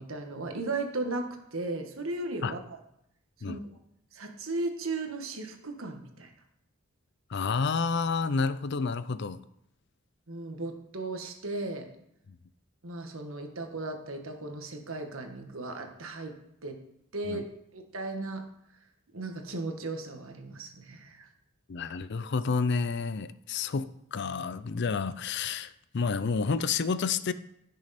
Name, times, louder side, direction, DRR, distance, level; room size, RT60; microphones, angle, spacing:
voice 1, 0.0-2.6 3.5-3.6 4.1-6.3 10.3-11.9 12.8-16.3 16.6-16.8 17.1-18.4 19.1-21.3, right 2 dB, 80° right, 4 dB, 1.5 m, -36 dB
voice 2, 7.3-9.4 12.3-12.4 17.3-17.4 21.7-27.3, left 5 dB, 55° left, 14 dB, 0.5 m, -30 dB
15.5 x 6.4 x 4.3 m, 0.78 s
head